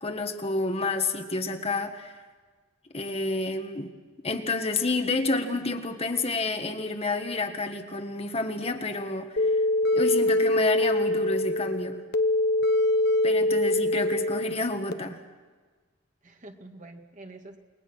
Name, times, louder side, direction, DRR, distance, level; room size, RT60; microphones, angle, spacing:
voice 1, 0.0-2.1 2.9-3.9 4.2-9.6 9.9-12.0 13.2-15.2, left 3 dB, 30° left, 6 dB, 1.5 m, -29 dB
sound 1, 9.4-14.9, left 1 dB, 60° left, 1.0 m, -24 dB
voice 2, 13.4-14.0 16.2-17.6, right 2 dB, 40° right, 4 dB, 2.0 m, -47 dB
29.0 x 21.0 x 6.2 m, 1.4 s
head